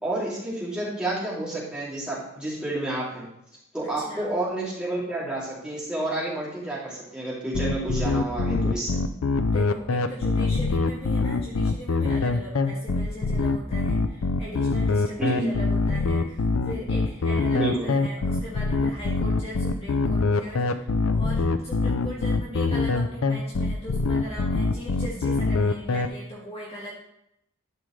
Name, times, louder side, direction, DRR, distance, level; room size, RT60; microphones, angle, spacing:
voice 1, 0.0-3.3 3.7-9.0 15.2-15.5 17.5-17.9, right 1 dB, 5° right, -8 dB, 2.8 m, -29 dB
voice 2, 3.9-4.3 9.4-26.9, equal, 30° left, -7 dB, 1.8 m, -39 dB
sound 1, 7.5-26.1, left 3 dB, 80° left, 0.5 m, -24 dB
12.0 x 5.1 x 3.2 m, 0.79 s
head